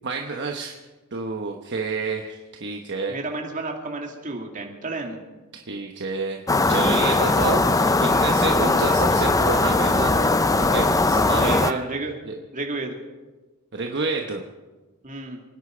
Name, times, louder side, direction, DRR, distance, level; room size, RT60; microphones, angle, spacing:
voice 1, 0.0-0.8 1.1-3.1 5.5-6.4 6.7-10.3 10.6-11.8 12.3-12.4 13.7-14.4, right 4 dB, 50° right, 3 dB, 1.1 m, -29 dB
voice 2, 3.1-5.2 7.3-7.6 8.7-8.9 11.4-12.1 12.5-13.0 15.0-15.4, right 2 dB, 35° right, 1 dB, 2.4 m, -32 dB
sound 1, 6.5-11.7, left 2 dB, 15° left, 0.5 m, -20 dB
27.5 x 10.0 x 5.1 m, 1.2 s
head